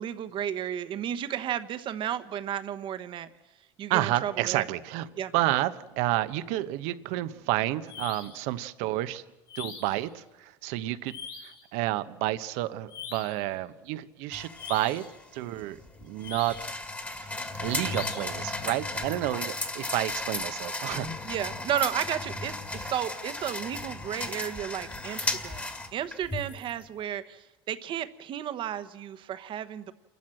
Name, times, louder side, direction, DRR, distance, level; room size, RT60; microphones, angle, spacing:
voice 1, 0.0-3.3 3.8-4.7 5.2-5.3 21.2-29.9, right 10 dB, 45° right, 12 dB, 1.1 m, -33 dB
voice 2, 3.9-5.1 5.3-9.2 9.6-11.1 11.7-15.0 15.3-16.7 17.1-21.1, right 16 dB, 75° right, 13 dB, 0.9 m, -30 dB
sound 1, 7.9-8.4 9.5-10.0 11.1-11.6 12.9-13.4 14.5-15.1 16.2-16.8 17.8-18.4, left 7 dB, 85° left, 5.5 m, -42 dB
sound 2, 14.3-26.7, left 2 dB, 15° left, 1.7 m, -35 dB
28.0 x 12.5 x 7.6 m, 1.1 s
supercardioid pair, 110°, 11 cm